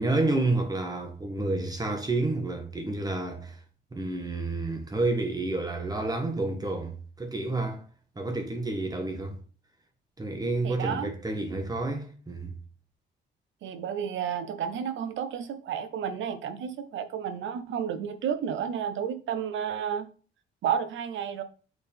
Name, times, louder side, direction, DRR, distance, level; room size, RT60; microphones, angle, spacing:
voice 1, 0.0-3.6 3.9-7.8 8.1-9.4 10.2-12.6, right 2 dB, 20° right, 1.3 m, -29 dB
voice 2, 10.6-11.1 13.6-20.1 20.6-21.4, right 8 dB, 75° right, 0.8 m, -31 dB
6.9 x 3.9 x 3.6 m
cardioid pair, 90°, 20 cm